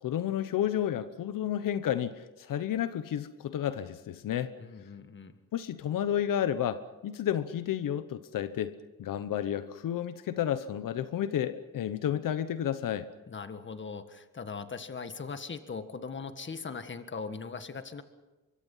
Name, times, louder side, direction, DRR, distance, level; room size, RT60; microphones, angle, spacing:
voice 1, 0.0-4.5 5.5-8.7 9.0-13.1, left 10 dB, 85° left, 12 dB, 1.0 m, -31 dB
voice 2, 4.6-5.4 13.3-18.0, left 5 dB, 35° left, 9 dB, 1.8 m, -40 dB
24.5 x 23.5 x 5.6 m, 1.1 s
cardioid pair, 100°, 32 cm